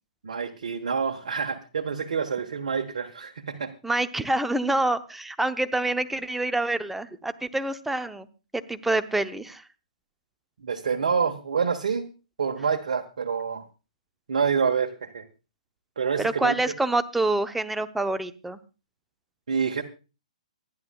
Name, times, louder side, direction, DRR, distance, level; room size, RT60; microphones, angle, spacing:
voice 1, 0.2-3.7 10.6-12.1 12.4-13.6 14.3-15.2 16.0-16.6 19.5-19.8, right 6 dB, 65° right, 3 dB, 1.3 m, -27 dB
voice 2, 3.8-8.3 8.7-9.6 16.2-18.6, right 2 dB, 5° right, 10 dB, 0.7 m, -26 dB
27.0 x 11.0 x 2.3 m, 0.32 s
figure-of-eight pair, 125°, 4 cm